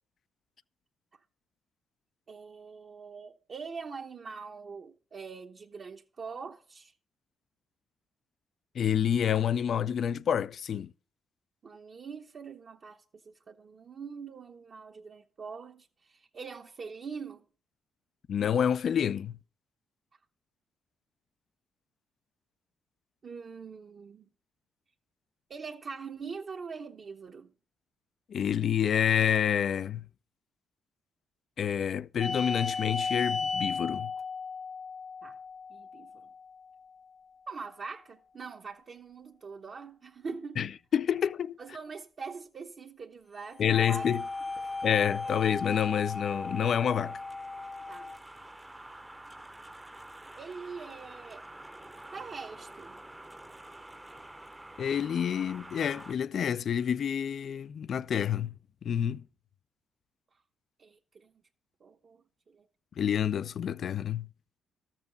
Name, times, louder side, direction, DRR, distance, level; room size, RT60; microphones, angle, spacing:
voice 1, 2.3-6.9 11.6-17.4 23.2-24.3 25.5-27.5 35.2-35.4 35.7-36.3 37.5-40.6 41.6-44.1 44.6-44.7 45.2-45.3 47.9-48.1 50.4-51.4 52.1-53.0 60.8-61.3 61.8-62.7, right 5 dB, 45° right, 1.0 m, -43 dB
voice 2, 8.7-10.9 18.3-19.3 28.3-30.0 31.6-34.1 40.6-41.6 43.6-44.2 44.8-47.2 54.8-58.5 58.8-59.2 63.0-64.3, left 9 dB, 55° left, 0.4 m, -28 dB
sound 1, 32.2-37.2 43.6-48.2, left 4 dB, 25° left, 0.8 m, -35 dB
sound 2, 43.9-56.1, right 1 dB, 10° right, 0.8 m, -49 dB
13.0 x 7.4 x 5.2 m
cardioid pair, 90°, 0 cm